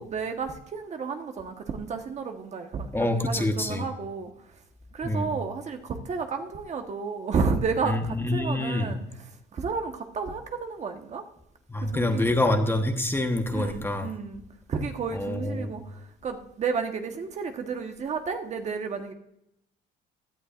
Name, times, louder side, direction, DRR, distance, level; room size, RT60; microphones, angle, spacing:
voice 1, 0.0-4.3 4.9-11.2 11.8-12.3 13.5-14.4 14.7-19.1, right 5 dB, 40° right, 1.3 m, -32 dB
voice 2, 2.9-3.9 5.0-5.3 7.8-8.9 11.7-14.1 15.1-15.8, left 1 dB, 15° left, 1.1 m, -26 dB
17.0 x 11.0 x 2.5 m
cardioid pair, 110°, 17 cm